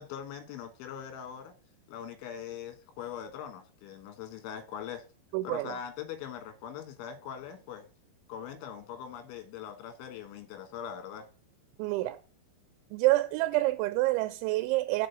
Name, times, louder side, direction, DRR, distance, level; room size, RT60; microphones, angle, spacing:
voice 1, 0.0-1.5 1.9-5.0 5.4-7.9 8.3-11.3, left 8 dB, 80° left, 3.8 m, -41 dB
voice 2, 5.3-5.8 11.8-12.2 12.9-15.1, right 18 dB, 85° right, 2.9 m, -27 dB
7.3 x 4.7 x 6.8 m
omnidirectional pair, 5.4 m